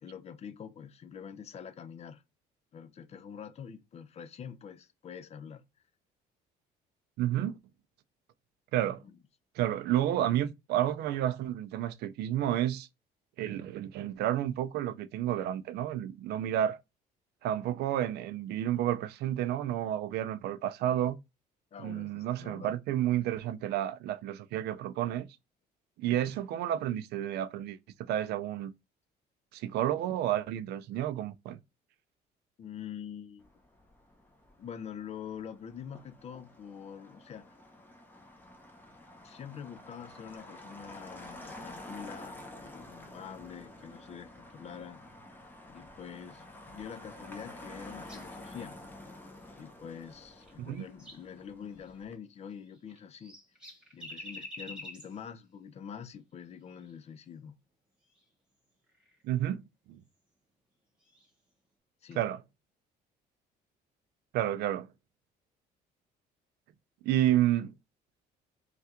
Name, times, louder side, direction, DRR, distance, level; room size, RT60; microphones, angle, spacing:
voice 1, 0.0-2.2 2.7-5.6 9.0-9.1 21.7-22.8 32.6-33.5 34.6-37.6 39.2-45.0 45.7-48.7 49.6-53.4 53.9-57.5 62.0-62.2, left 7 dB, 40° left, 0.5 m, -45 dB
voice 2, 7.2-7.6 8.7-9.0 9.6-12.9 13.4-16.8 17.4-21.2 21.8-25.3 26.0-27.8 28.1-28.7 29.5-31.6 50.6-50.9 59.2-59.6 59.9-60.0 62.2-62.4 64.3-64.9 67.0-67.7, right 12 dB, 75° right, 0.4 m, -30 dB
Motor vehicle (road), 33.4-52.1, left 1 dB, 10° left, 0.8 m, -50 dB
sound 1, 48.0-48.7 50.0-51.3 51.7-51.9 52.6-55.2 56.7-57.0 58.1-58.2 58.9-59.2 61.0-61.3, left 1 dB, 5° right, 1.4 m, -48 dB
3.3 x 2.4 x 2.8 m
cardioid pair, 110°, 17 cm